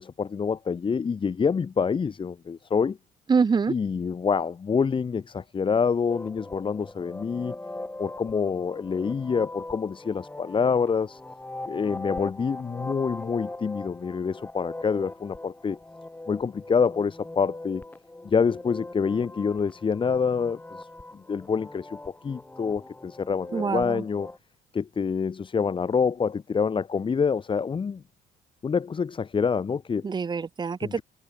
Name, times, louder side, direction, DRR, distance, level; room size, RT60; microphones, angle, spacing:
voice 1, 0.0-3.0 3.7-7.6 8.0-11.2 11.7-15.8 16.3-17.8 18.2-20.9 21.1-22.0 22.2-24.3 24.7-28.0 28.6-30.1 30.8-31.0, left 6 dB, 30° left, 1.7 m, -26 dB
voice 2, 3.3-3.7 23.5-24.0 30.0-31.0, right 5 dB, 25° right, 1.1 m, -25 dB
sound 1, 6.1-24.4, left 2 dB, 10° left, 5.3 m, -41 dB
cardioid pair, 110°, 17 cm